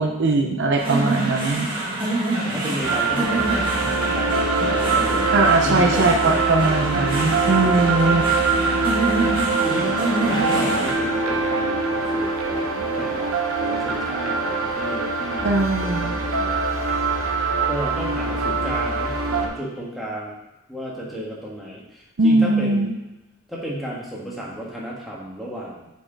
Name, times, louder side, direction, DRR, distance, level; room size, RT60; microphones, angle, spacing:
voice 1, 0.0-1.7 5.3-8.3 15.4-16.2 22.2-22.9, right 2 dB, 50° right, 3 dB, 0.5 m, -20 dB
sound 1, 0.8-10.9, right 2 dB, 25° right, 1.7 m, -26 dB
voice 2, 2.4-5.2 5.6-6.3 6.7-6.9 7.4-7.8 9.6-16.6 17.6-20.3 20.7-23.0 23.5-25.9, equal, ahead, -5 dB, 1.4 m, -33 dB
sound 2, 2.8-19.5, right 4 dB, 70° right, 0.8 m, -23 dB
7.7 x 4.3 x 3.9 m, 0.95 s
head